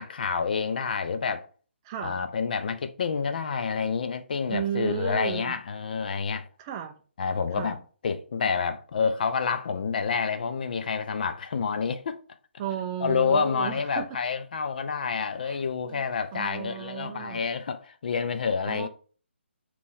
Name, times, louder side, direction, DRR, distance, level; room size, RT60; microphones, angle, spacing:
voice 1, 0.0-1.5 2.0-6.5 7.2-12.2 13.0-18.9, left 5 dB, 45° left, 0.4 m, -28 dB
voice 2, 1.8-2.2 4.5-5.5 6.6-6.9 7.6-7.8 12.6-14.1 15.4-15.6 15.9-16.0 16.3-17.4 18.7-18.9, right 9 dB, 20° right, 0.4 m, -33 dB
5.2 x 3.1 x 2.6 m
figure-of-eight pair, 140°, 7 cm